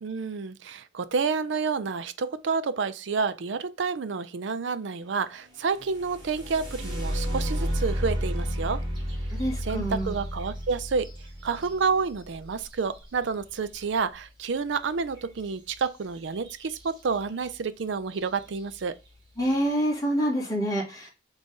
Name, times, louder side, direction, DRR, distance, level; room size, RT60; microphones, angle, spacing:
voice 1, 0.0-8.8 9.6-11.1 11.4-19.0, right 5 dB, 65° right, 0.5 m, -29 dB
sound 1, 5.8-13.6 15.7-15.9 16.3-16.8 17.4-17.5 18.1-18.4, equal, 25° right, 1.8 m, -32 dB
voice 2, 9.3-10.2 19.4-21.1, equal, 20° left, 1.9 m, -27 dB
3.9 x 3.3 x 3.6 m
head